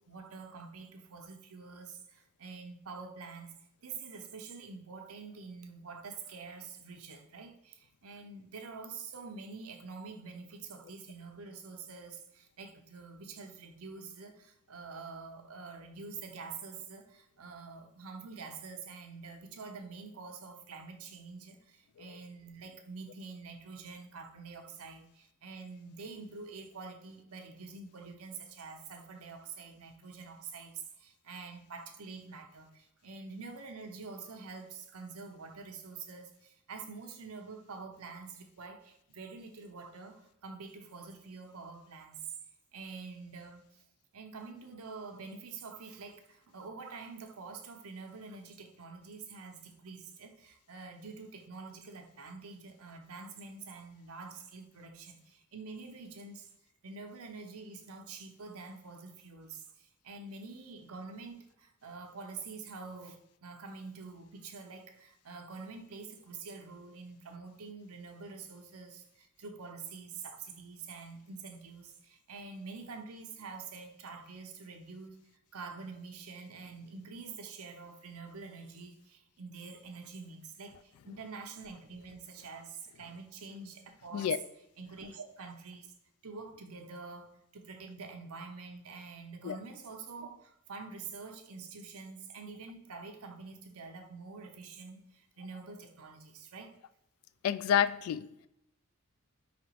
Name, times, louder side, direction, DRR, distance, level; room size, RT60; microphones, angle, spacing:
voice 1, 0.1-3.5 3.8-42.2 42.7-43.9 44.1-56.5 56.8-75.2 75.5-84.4 84.8-85.9 86.2-96.7, right 4 dB, 85° right, 0.7 m, -46 dB
voice 2, 97.4-98.5, left 9 dB, 85° left, 0.3 m, -29 dB
5.1 x 2.9 x 3.0 m
head